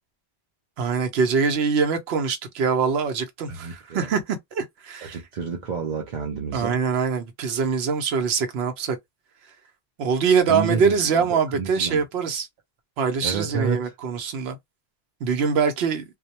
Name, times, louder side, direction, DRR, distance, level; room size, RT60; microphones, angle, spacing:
voice 1, 0.8-5.2 6.5-9.0 10.0-12.5 13.0-14.6 15.2-16.0, right 5 dB, 80° right, 0.9 m, -23 dB
voice 2, 3.5-4.1 5.0-6.8 10.5-12.0 13.2-13.9, right 6 dB, 55° right, 0.6 m, -30 dB
2.2 x 2.0 x 2.7 m
omnidirectional pair, 1.0 m